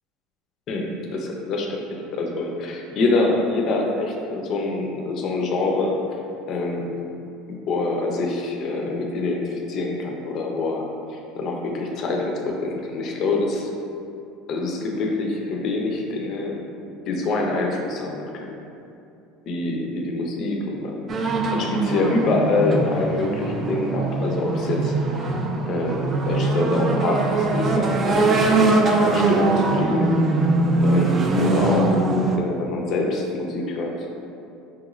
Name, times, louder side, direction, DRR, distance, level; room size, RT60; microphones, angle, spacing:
voice 1, 0.7-6.0 6.5-6.9 7.5-10.8 11.1-13.7 14.5-16.6 17.1-18.6 19.5-21.0 21.5-24.9 25.6-30.2 30.8-32.0 32.4-34.1, left 2 dB, 40° left, 0 dB, 0.5 m, -25 dB
sound 1, 21.1-32.4, right 2 dB, 25° right, 0.3 m, -21 dB
5.7 x 3.0 x 2.4 m, 2.6 s
cardioid pair, 155°, 0 cm